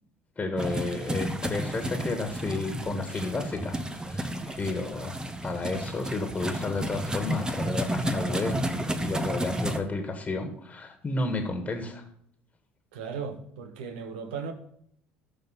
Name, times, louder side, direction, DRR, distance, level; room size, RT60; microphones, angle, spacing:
voice 1, 0.4-5.2 5.4-12.0, left 3 dB, 20° left, 1.9 m, -32 dB
sound 1, 0.6-9.8, right 1 dB, 10° right, 1.0 m, -32 dB
voice 2, 12.9-14.5, right 6 dB, 65° right, 1.4 m, -36 dB
14.0 x 6.7 x 4.0 m
figure-of-eight pair, 60°, 6 cm